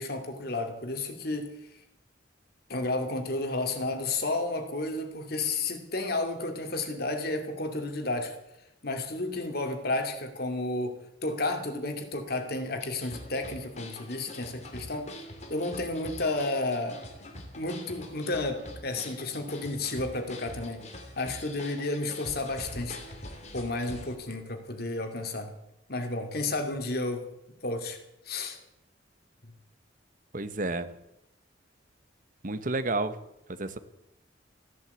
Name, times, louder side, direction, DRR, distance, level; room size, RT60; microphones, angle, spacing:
voice 1, 0.0-1.5 2.7-8.4 8.8-15.1 15.5-17.0 17.6-20.9 21.2-23.0 23.5-25.5 25.9-27.3 27.6-28.0 28.3-28.6, left 2 dB, 55° left, 5 dB, 2.5 m, -32 dB
sound 1, 12.8-24.2, left 1 dB, 35° left, 2.6 m, -44 dB
voice 2, 30.3-30.9 32.4-33.2 33.5-33.8, right 2 dB, 45° right, 11 dB, 1.1 m, -30 dB
15.0 x 10.5 x 8.2 m, 0.86 s
head